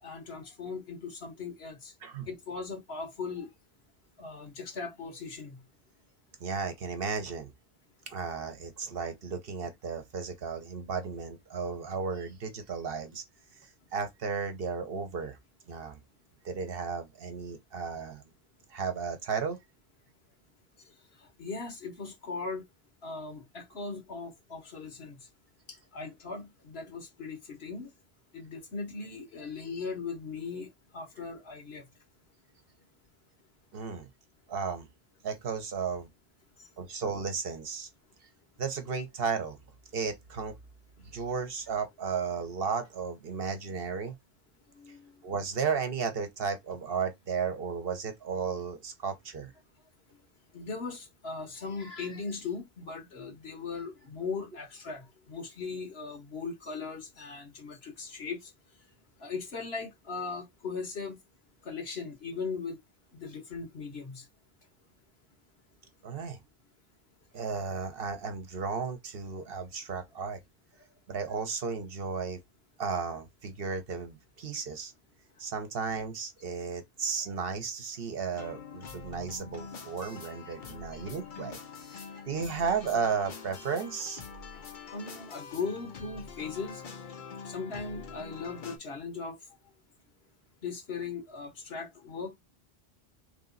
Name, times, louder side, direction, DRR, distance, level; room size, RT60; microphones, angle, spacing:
voice 1, 0.0-1.9 2.3-3.5 4.2-5.6 21.4-22.6 23.0-25.2 25.9-27.9 28.3-31.8 44.7-45.1 50.5-58.5 59.2-61.2 61.6-62.8 63.2-64.2 80.9-81.0 82.1-82.2 84.5-84.6 84.9-86.8 87.5-89.4 90.6-92.3, left 4 dB, 80° left, 1.5 m, -38 dB
voice 2, 6.4-7.5 8.1-13.2 13.6-15.4 15.7-16.0 16.4-18.2 18.7-19.6 33.7-34.1 34.5-34.9 35.2-36.1 36.8-37.9 38.6-39.6 39.9-40.6 41.0-44.2 45.2-49.5 66.0-66.4 67.3-70.4 71.1-72.4 72.8-74.9 75.4-81.6 81.9-84.2, right 5 dB, 65° right, 1.1 m, -34 dB
sound 1, 78.3-88.8, left 5 dB, 55° left, 0.9 m, -45 dB
3.4 x 3.0 x 3.8 m
omnidirectional pair, 1.0 m